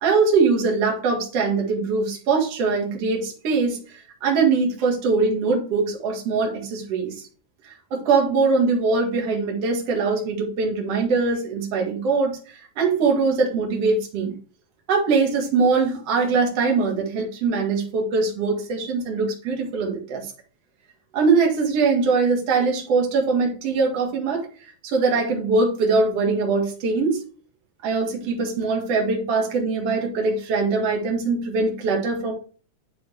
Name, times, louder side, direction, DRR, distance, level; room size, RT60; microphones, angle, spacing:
voice 1, 0.0-7.3 7.6-14.3 14.9-20.3 21.1-24.4 24.8-27.2 27.8-32.3, right 4 dB, 55° right, 1 dB, 2.7 m, -22 dB
9.9 x 4.4 x 3.3 m, 0.38 s
omnidirectional pair, 3.7 m